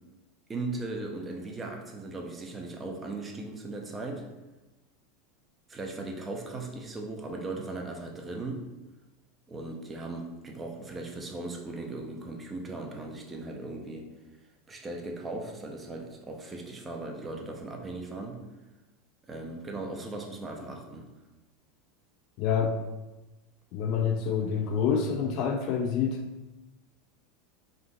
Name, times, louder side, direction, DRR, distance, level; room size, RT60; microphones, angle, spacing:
voice 1, 0.5-4.3 5.7-8.7 9.5-14.1 14.7-18.4 19.3-21.1, right 2 dB, 20° right, 1 dB, 0.6 m, -38 dB
voice 2, 22.4-22.8 23.7-26.2, left 6 dB, 55° left, 3 dB, 0.3 m, -27 dB
3.7 x 2.5 x 2.3 m, 1.1 s
hypercardioid pair, 90°, 0 cm